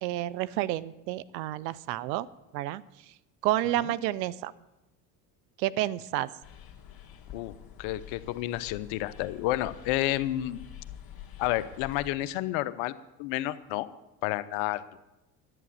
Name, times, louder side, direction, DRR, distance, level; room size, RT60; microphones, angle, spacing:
voice 1, 0.0-2.3 2.5-3.1 3.4-4.5 5.6-6.3, right 14 dB, 85° right, 18 dB, 0.6 m, -30 dB
sound 1, 6.4-12.1, left 10 dB, 45° left, 1.7 m, -47 dB
voice 2, 7.8-10.6 11.4-12.9 13.2-13.9 14.2-14.8, left 15 dB, 70° left, 15 dB, 0.8 m, -30 dB
11.0 x 9.3 x 7.5 m, 0.96 s
hypercardioid pair, 65°, 50 cm